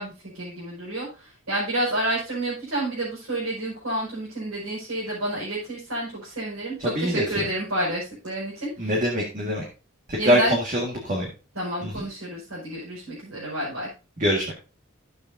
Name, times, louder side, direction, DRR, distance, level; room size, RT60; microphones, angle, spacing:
voice 1, 0.0-8.9 9.4-9.5 10.2-10.6 11.6-13.9, right 1 dB, 85° right, -7 dB, 5.4 m, -30 dB
voice 2, 6.8-7.5 8.8-9.7 10.1-11.3 11.8-12.0 14.2-14.5, equal, 35° right, -1 dB, 1.8 m, -24 dB
12.5 x 8.4 x 2.7 m, 0.33 s
head